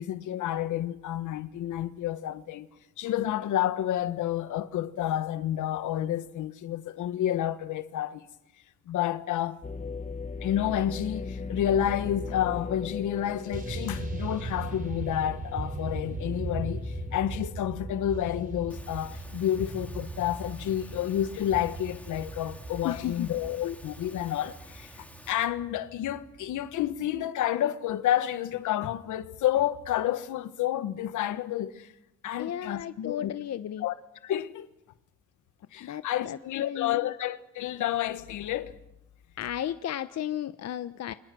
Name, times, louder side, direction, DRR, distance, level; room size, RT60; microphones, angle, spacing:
voice 1, 0.0-2.7 3.0-8.3 8.9-9.6 10.4-31.9 32.2-33.3 33.8-33.9 34.2-34.7 35.7-38.8, left 11 dB, 80° left, 1.4 m, -30 dB
sound 1, 9.6-19.6 20.0-20.1 20.8-21.2, left 4 dB, 25° left, 1.3 m, -40 dB
sound 2, 11.5-12.7 13.5-27.2, right 3 dB, 25° right, 4.0 m, -39 dB
Engine / Mechanisms, 18.7-25.3, left 1 dB, 5° left, 3.0 m, -51 dB
voice 2, 22.8-23.3 32.4-33.9 35.8-37.1 39.4-41.1, left 11 dB, 60° left, 0.9 m, -34 dB
29.5 x 25.0 x 6.2 m
cardioid pair, 90°, 30 cm